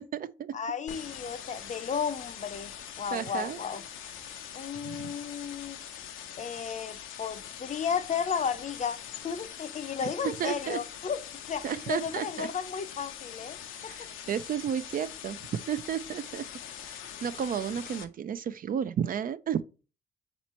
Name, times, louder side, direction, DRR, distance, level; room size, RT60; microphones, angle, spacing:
voice 1, 0.0-0.5 1.5-1.7 3.1-3.6 4.8-5.1 10.0-10.8 11.6-12.5 13.7-16.4 16.8-19.6, right 8 dB, 45° right, 0.4 m, -33 dB
voice 2, 0.5-3.8 4.5-5.8 6.4-9.0 9.2-11.2 11.5-13.6 13.8-13.9, left 7 dB, 35° left, 0.6 m, -33 dB
sound 1, 0.9-18.0, left 9 dB, 90° left, 0.7 m, -43 dB
4.0 x 3.1 x 4.3 m
cardioid pair, 90°, 20 cm